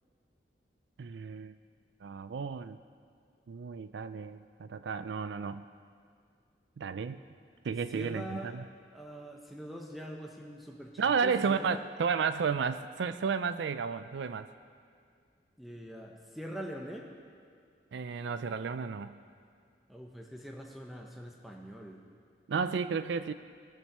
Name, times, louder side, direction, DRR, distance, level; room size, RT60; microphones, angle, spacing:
voice 1, 1.0-1.5 2.0-2.8 3.5-5.6 6.8-7.2 7.6-8.6 11.0-14.5 17.9-19.1 22.5-23.3, right 5 dB, 75° right, 12 dB, 0.4 m, -32 dB
voice 2, 7.9-8.6 8.9-11.8 15.6-17.1 19.9-22.0, right 1 dB, ahead, 0 dB, 0.8 m, -43 dB
18.0 x 6.4 x 6.6 m, 2.2 s
head